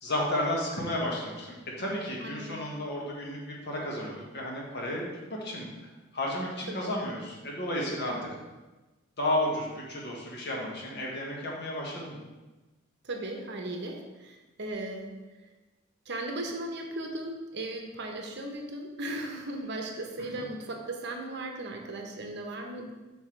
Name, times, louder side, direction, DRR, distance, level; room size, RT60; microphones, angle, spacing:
voice 1, 0.0-5.7 6.1-8.1 9.2-12.2 20.2-20.5, left 1 dB, 55° left, -2 dB, 1.6 m, -32 dB
voice 2, 2.2-2.6 6.7-6.8 8.1-8.2 13.0-15.1 16.1-22.9, right 1 dB, 60° right, 2 dB, 1.0 m, -37 dB
7.9 x 5.4 x 3.3 m, 1.1 s
head